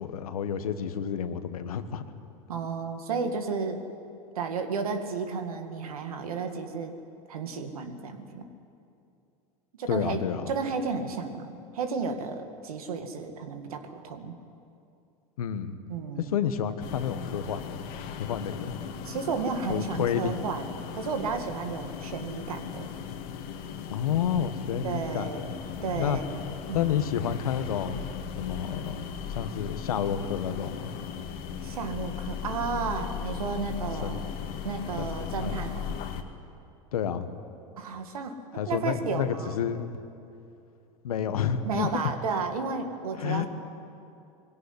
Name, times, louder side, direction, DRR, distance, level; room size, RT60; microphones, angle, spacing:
voice 1, 0.0-2.0 9.9-10.5 15.4-15.8 16.3-17.8 18.2-18.8 19.7-20.5 23.9-25.5 25.8-26.2 26.7-28.1 28.4-29.0 29.3-30.9 34.0-34.2 35.0-35.6 36.9-37.4 38.5-39.9 41.0-42.0 43.2-43.5, left 8 dB, 90° left, 10 dB, 1.4 m, -30 dB
voice 2, 2.5-3.8 4.4-6.9 7.3-8.5 9.8-10.2 10.5-14.4 15.9-16.4 19.0-22.9 24.8-26.3 26.7-26.9 31.6-34.2 34.6-35.9 37.8-38.4 38.7-39.6 41.6-43.5, right 5 dB, 90° right, 6 dB, 2.1 m, -33 dB
sound 1, 16.8-36.2, left 7 dB, 55° left, 1.9 m, -37 dB
22.0 x 17.0 x 9.8 m, 2.6 s
hypercardioid pair, 100°, 18 cm